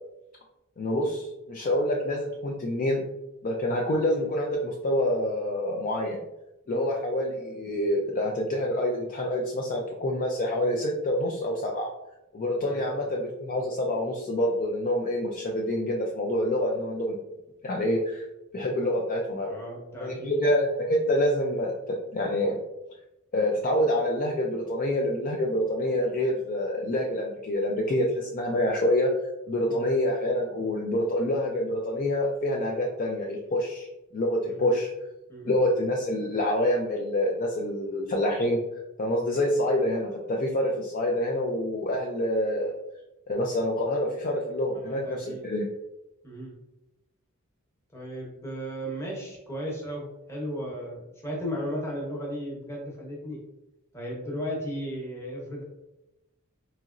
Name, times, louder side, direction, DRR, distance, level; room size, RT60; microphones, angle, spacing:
voice 1, 0.8-3.0 3.4-6.2 6.7-11.9 12.3-17.2 17.6-18.2 18.5-19.5 20.0-22.6 23.3-29.1 29.5-33.9 34.1-34.9 35.5-38.6 39.0-42.7 43.3-45.7, left 1 dB, 40° left, -1 dB, 0.4 m, -27 dB
voice 2, 19.5-20.4 29.7-29.9 34.5-34.8 35.3-35.6 44.9-45.4 46.2-46.5 47.9-53.4 53.9-55.6, equal, 10° left, -3 dB, 0.9 m, -35 dB
4.1 x 2.9 x 2.4 m, 0.93 s
head